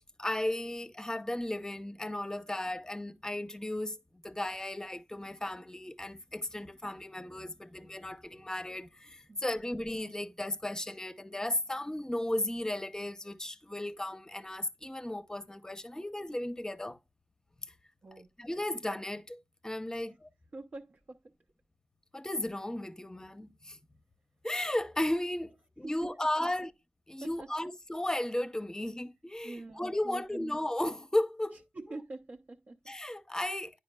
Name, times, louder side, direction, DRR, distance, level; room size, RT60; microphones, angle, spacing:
voice 1, 0.0-17.0 18.4-20.3 22.1-23.8 24.4-25.5 25.8-26.7 27.1-31.6 32.9-33.7, left 1 dB, 15° left, 0.7 m, -35 dB
voice 2, 9.3-9.6 18.0-18.3 20.0-20.2 20.5-21.2 27.2-27.5 29.4-30.6 31.7-32.8, right 2 dB, 55° right, 0.7 m, -45 dB
9.7 x 4.8 x 2.2 m
cardioid pair, 60°, 4 cm